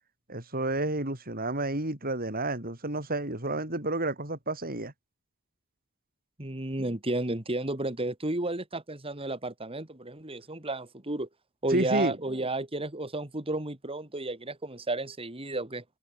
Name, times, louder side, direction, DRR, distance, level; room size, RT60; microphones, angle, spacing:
voice 1, 0.3-4.9 11.7-12.2, right 2 dB, 40° right, 6.0 m, -30 dB
voice 2, 6.4-11.3 11.6-15.8, right 2 dB, 25° right, 2.7 m, -32 dB
head